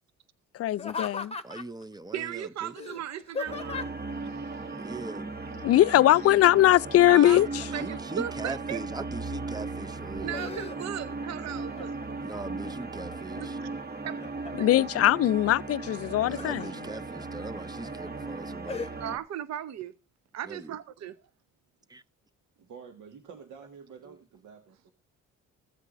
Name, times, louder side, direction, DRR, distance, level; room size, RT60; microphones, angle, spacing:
voice 1, 0.6-1.3 5.6-7.6 14.6-16.6, left 14 dB, 50° left, 0.4 m, -21 dB
Laughter, 0.7-1.8 2.8-4.1 5.9-6.3 6.6-8.2 8.8-9.5 9.9-11.1 11.5-12.1 12.6-13.4 13.9-14.7 15.9-16.7 17.2-17.3 17.8-18.1 18.7-18.9, left 5 dB, 20° left, 1.1 m, -39 dB
voice 2, 1.4-2.7 4.7-5.3 7.2-10.4 12.2-13.6 16.2-18.9 20.4-20.7 21.9-22.0 24.1-24.2, right 2 dB, 15° right, 0.5 m, -40 dB
voice 3, 2.1-3.9 4.2-4.9 7.0-8.8 10.2-11.9 13.4-13.7 14.0-14.2 14.6-14.7 19.0-19.9 20.3-21.2, right 10 dB, 60° right, 0.9 m, -37 dB
sound 1, 3.5-19.2, right 3 dB, 30° right, 1.3 m, -37 dB
voice 4, 22.6-24.9, right 6 dB, 85° right, 1.7 m, -49 dB
15.5 x 8.1 x 2.6 m
cardioid pair, 90°, 30 cm